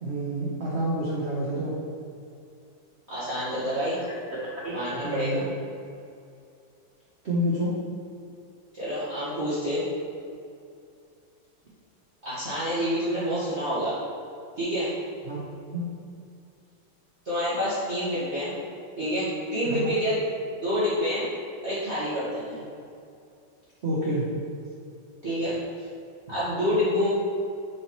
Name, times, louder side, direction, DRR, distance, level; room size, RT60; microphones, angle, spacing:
voice 1, 0.0-1.7 4.6-4.8 5.0-5.5 7.2-7.8 15.3-15.4 15.7-15.8 19.6-19.8 23.8-24.3, right 1 dB, 55° right, -5 dB, 0.7 m, -28 dB
voice 2, 3.1-4.0 4.7-5.4 8.7-9.8 12.2-14.0 14.6-14.9 17.2-18.5 19.0-20.2 20.6-21.2 21.6-22.6 25.2-25.6 26.3-27.1, equal, 35° right, -13 dB, 1.6 m, -27 dB
6.2 x 5.5 x 3.0 m, 2.5 s
omnidirectional pair, 2.2 m